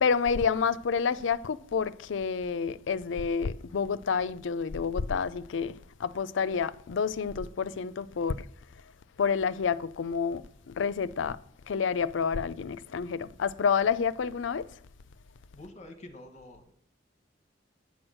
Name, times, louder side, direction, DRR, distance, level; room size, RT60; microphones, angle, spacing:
voice 1, 0.0-8.5 9.2-11.4 11.7-14.7, left 6 dB, 90° left, 0.4 m, -29 dB
voice 2, 15.5-16.7, left 1 dB, 40° left, 1.3 m, -47 dB
9.4 x 6.2 x 6.3 m
head